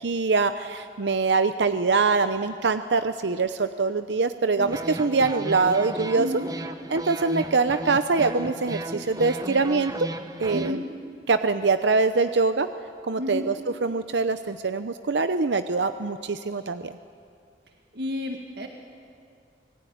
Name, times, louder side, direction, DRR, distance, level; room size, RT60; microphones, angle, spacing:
voice 1, 0.0-6.3 6.9-10.1 10.4-10.8 11.3-12.7 13.0-13.5 13.8-16.9, right 4 dB, 80° right, 10 dB, 0.7 m, -24 dB
sound 1, 4.6-10.7, right 1 dB, 20° right, 0.8 m, -35 dB
voice 2, 6.1-6.5 10.5-10.8 13.2-13.5 17.9-18.7, left 1 dB, 65° right, 3 dB, 1.9 m, -30 dB
26.0 x 19.5 x 9.5 m, 2.2 s
head